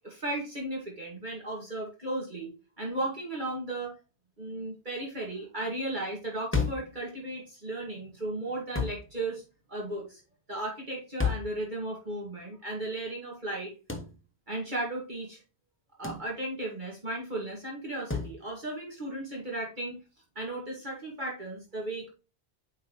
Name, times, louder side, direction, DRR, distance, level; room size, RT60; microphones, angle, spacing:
voice 1, 0.0-2.5 2.8-4.0 4.4-9.4 9.7-10.2 10.5-13.7 14.5-15.4 16.0-20.0 20.4-22.1, right 2 dB, 45° right, -3 dB, 2.2 m, -35 dB
sound 1, 6.5-6.9 8.7-9.1 11.2-11.6 13.9-14.1 16.0-16.3 18.1-18.4, left 5 dB, 10° left, 1.0 m, -30 dB
9.1 x 4.6 x 3.0 m, 0.31 s
omnidirectional pair, 1.1 m